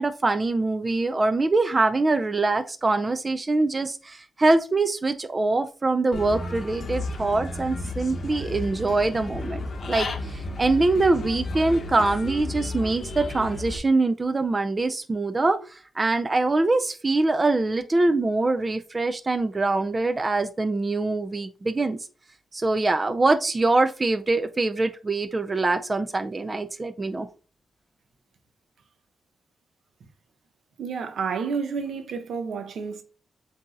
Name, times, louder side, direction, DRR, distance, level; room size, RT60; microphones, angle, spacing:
voice 1, 0.0-22.0 22.5-27.3, right 2 dB, 30° right, 0.3 m, -24 dB
Human voice / Bird, 6.1-13.8, left 2 dB, 55° left, 0.8 m, -33 dB
voice 2, 30.8-33.0, right 5 dB, 75° right, 0.7 m, -30 dB
7.5 x 2.7 x 2.5 m
cardioid pair, 85°, 0 cm